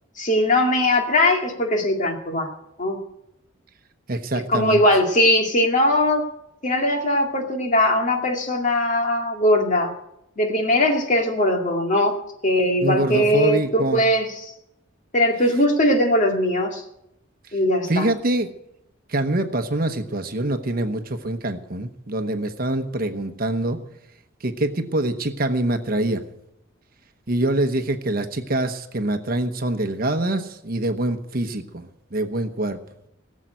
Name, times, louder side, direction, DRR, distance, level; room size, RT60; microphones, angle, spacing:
voice 1, 0.2-2.5 2.8-3.0 4.5-6.2 6.6-9.9 10.4-12.2 12.4-14.5 15.1-16.8 17.5-18.1, left 1 dB, 40° left, 2 dB, 2.3 m, -20 dB
voice 2, 4.1-4.8 12.8-14.0 17.5-17.6 17.9-18.5 19.1-23.8 24.4-26.2 27.3-32.8, right 1 dB, 45° right, 7 dB, 1.0 m, -25 dB
18.0 x 7.4 x 9.1 m, 0.82 s
head